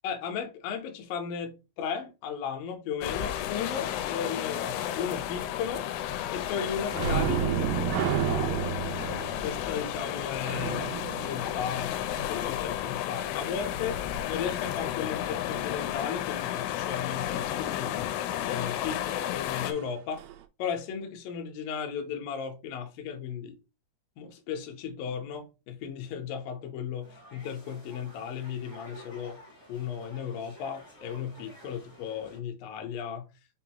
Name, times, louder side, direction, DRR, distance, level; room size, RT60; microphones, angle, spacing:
voice 1, 0.0-5.9 6.3-8.7 9.4-11.0 11.2-14.0 14.3-17.9 18.4-20.2 20.6-23.6 24.2-29.4 29.7-33.3, left 7 dB, 75° left, 2.2 m, -35 dB
sound 1, 3.0-19.7, left 12 dB, 90° left, 2.6 m, -32 dB
sound 2, 6.9-12.3 19.7-19.8 20.2-20.4, right 10 dB, 90° right, 2.7 m, -31 dB
sound 3, 27.0-32.4, right 1 dB, 45° left, 0.6 m, -51 dB
6.1 x 2.5 x 2.9 m
omnidirectional pair, 4.7 m